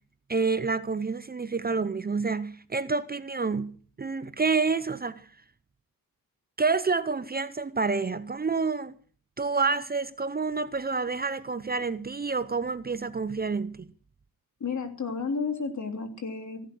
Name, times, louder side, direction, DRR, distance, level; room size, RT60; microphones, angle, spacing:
voice 1, 0.3-5.3 6.6-8.9 9.4-13.9, right 4 dB, 25° right, 0.8 m, -28 dB
voice 2, 14.6-16.6, left 5 dB, 50° left, 3.3 m, -32 dB
16.0 x 11.5 x 6.3 m
cardioid pair, 90°, 37 cm